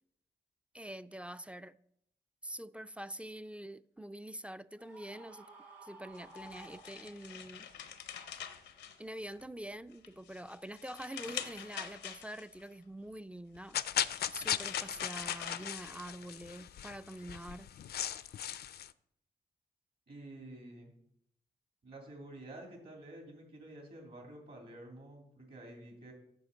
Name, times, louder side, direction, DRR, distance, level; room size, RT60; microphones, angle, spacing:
voice 1, 0.7-1.8 2.4-5.5 5.8-7.7 9.0-13.8 14.3-17.7, right 1 dB, 5° right, 0.3 m, -45 dB
Screaming, 4.8-7.5, right 2 dB, 80° right, 2.0 m, -54 dB
sound 1, 6.1-9.5 9.9-12.6 13.5-16.3, left 9 dB, 90° left, 0.7 m, -46 dB
sound 2, 13.7-18.9, left 10 dB, 60° left, 0.4 m, -37 dB
voice 2, 20.1-20.9 21.8-26.1, right 1 dB, 60° right, 2.6 m, -50 dB
9.3 x 6.3 x 4.0 m
supercardioid pair, 45°, 18 cm